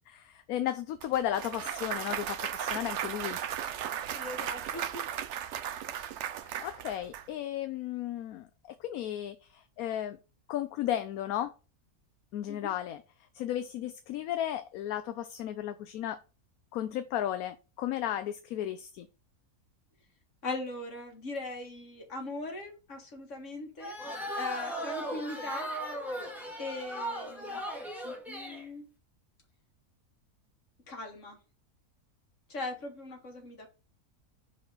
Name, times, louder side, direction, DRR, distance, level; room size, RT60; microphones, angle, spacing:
voice 1, 0.1-3.4 6.3-8.5 8.8-10.2 10.5-11.5 12.3-13.0 13.3-16.2 16.7-19.1, left 11 dB, 75° left, 1.0 m, -34 dB
Clapping / Cheering / Applause, 1.0-7.2, right 9 dB, 65° right, 0.8 m, -36 dB
voice 2, 4.1-5.0 12.5-12.6 20.4-23.9 24.3-25.7 26.6-27.6 28.0-28.9 30.9-31.4 32.5-33.7, left 2 dB, 50° left, 2.0 m, -39 dB
sound 1, 23.8-28.7, equal, ahead, 1.9 m, -37 dB
5.7 x 4.8 x 4.0 m
omnidirectional pair, 1.6 m